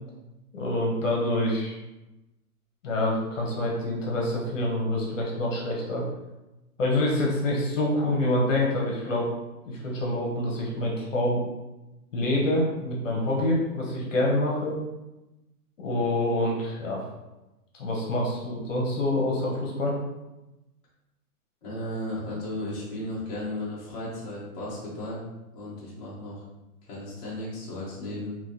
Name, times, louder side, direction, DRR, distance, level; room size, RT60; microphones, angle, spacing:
voice 1, 0.5-1.8 2.8-6.0 6.8-9.3 9.6-11.4 12.1-14.8 15.8-17.0 17.7-19.9, left 1 dB, 55° left, -2 dB, 1.0 m, -26 dB
voice 2, 21.6-25.2 25.5-26.4 26.9-28.4, left 1 dB, 25° left, -9 dB, 0.9 m, -35 dB
3.6 x 2.9 x 2.7 m, 1.0 s
hypercardioid pair, 165°, 46 cm